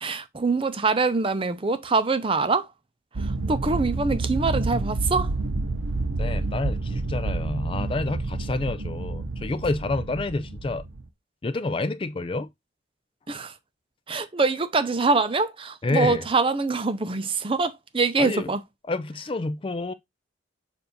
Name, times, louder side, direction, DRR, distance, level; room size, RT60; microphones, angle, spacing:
voice 1, 0.0-2.7 3.2-5.3 13.3-13.5 14.1-18.6, right 3 dB, 25° right, 0.6 m, -24 dB
sound 1, 3.1-11.0, right 2 dB, 80° right, 0.8 m, -29 dB
voice 2, 6.2-10.8 11.4-12.5 15.8-16.3 18.2-18.5 18.9-19.9, left 2 dB, 25° left, 0.4 m, -28 dB
7.0 x 2.6 x 5.2 m
head